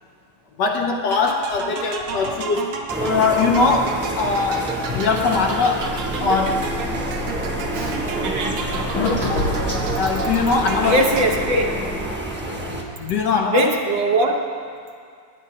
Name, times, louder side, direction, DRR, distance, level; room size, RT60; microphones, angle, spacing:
voice 1, 0.6-5.9 6.2-6.7 9.3-9.5 9.9-11.1 13.0-13.7, left 4 dB, 70° left, 3 dB, 1.1 m, -21 dB
sound 1, 1.1-11.8, right 5 dB, 85° right, 1.8 m, -32 dB
sound 2, 2.9-12.8, right 1 dB, 10° right, 0.6 m, -28 dB
sound 3, 5.8-12.1, left 2 dB, 55° left, 1.3 m, -30 dB
voice 2, 7.7-8.6 10.8-11.7 13.5-14.3, right 1 dB, 65° right, 1 dB, 1.7 m, -21 dB
19.5 x 10.0 x 2.8 m, 2.2 s
omnidirectional pair, 2.3 m